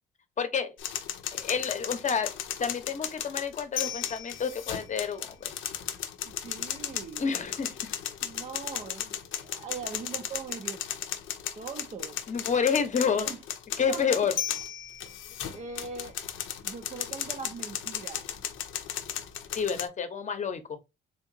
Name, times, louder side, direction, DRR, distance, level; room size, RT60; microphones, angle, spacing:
voice 1, 0.4-0.8 1.3-2.3 2.6-5.5 7.2-7.7 12.3-13.3 13.8-14.4 19.6-20.8, left 6 dB, 40° left, 0.8 m, -29 dB
sound 1, 0.8-19.9, left 10 dB, 80° left, 0.5 m, -35 dB
voice 2, 6.2-7.3 8.2-10.8 11.5-12.2 13.2-13.4 13.9-14.1 15.1-16.2 16.6-18.3, right 5 dB, 35° right, 0.5 m, -41 dB
3.5 x 2.8 x 2.6 m
cardioid pair, 90°, 20 cm